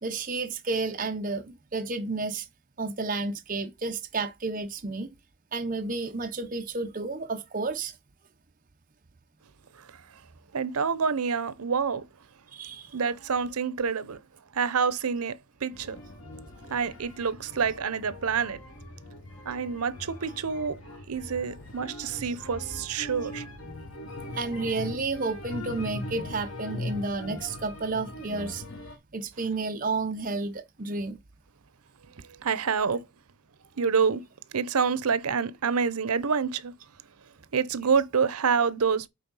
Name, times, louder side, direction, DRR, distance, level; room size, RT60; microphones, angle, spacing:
voice 1, 0.0-2.5 2.8-5.1 5.5-7.9 12.5-12.9 24.3-28.6 29.1-31.2, right 3 dB, 35° right, 0.8 m, -31 dB
voice 2, 10.5-12.0 12.9-14.2 14.5-16.0 16.7-18.6 19.4-20.8 21.1-23.4 32.4-33.0 33.8-34.2 34.5-36.7 37.5-39.1, right 6 dB, 85° right, 0.7 m, -27 dB
sound 1, 15.7-29.0, left 2 dB, 70° left, 2.1 m, -41 dB
8.4 x 3.5 x 5.5 m
head